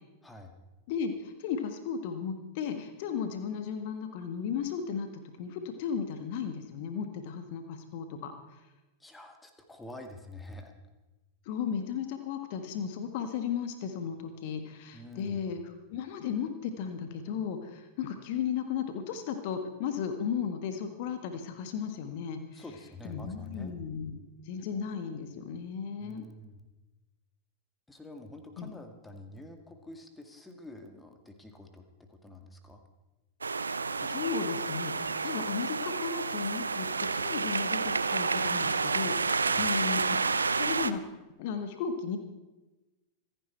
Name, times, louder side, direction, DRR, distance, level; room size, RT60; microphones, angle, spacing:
voice 1, 0.2-0.5 9.0-10.7 14.9-15.4 22.5-23.7 26.0-26.6 27.9-32.8 39.5-39.7, left 1 dB, 10° left, 6 dB, 2.0 m, -47 dB
voice 2, 0.9-8.3 11.4-15.6 15.9-22.6 23.0-24.2 24.4-26.3 28.6-28.7 34.0-40.2 40.5-41.0 41.4-42.2, left 7 dB, 50° left, 8 dB, 1.6 m, -35 dB
sound 1, 33.4-40.9, right 4 dB, 75° right, 0.6 m, -30 dB
25.5 x 10.5 x 4.5 m, 1.1 s
figure-of-eight pair, 90°, 0 cm